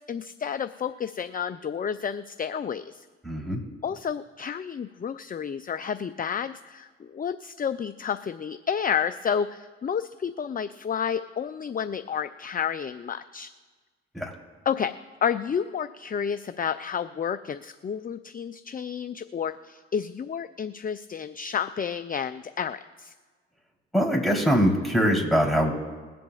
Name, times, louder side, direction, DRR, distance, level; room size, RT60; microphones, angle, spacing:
voice 1, 0.0-3.1 3.8-13.5 14.7-23.1, left 7 dB, 25° left, 11 dB, 0.5 m, -30 dB
voice 2, 3.2-3.6 14.1-14.3 23.9-25.7, equal, ahead, -1 dB, 3.7 m, -23 dB
21.5 x 7.7 x 2.5 m, 1.4 s
hypercardioid pair, 50°, 32 cm